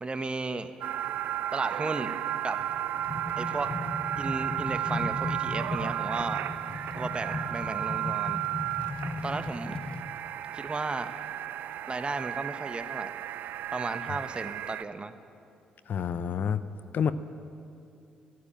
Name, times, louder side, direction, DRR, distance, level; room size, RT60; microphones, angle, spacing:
voice 1, 0.0-0.7 1.5-2.1 2.4-2.6 3.4-3.7 4.2-6.4 7.0-8.4 9.2-9.8 10.5-11.1 11.9-13.1 13.7-15.1, right 3 dB, 30° right, 10 dB, 1.1 m, -34 dB
sound 1, 0.8-14.8, right 12 dB, 65° right, 0.4 m, -34 dB
sound 2, 2.6-10.1, left 3 dB, 30° left, 1.0 m, -37 dB
voice 2, 15.9-16.6 16.9-17.1, left 7 dB, 55° left, 13 dB, 0.6 m, -28 dB
12.5 x 11.5 x 9.0 m, 2.6 s
hypercardioid pair, 45°, 4 cm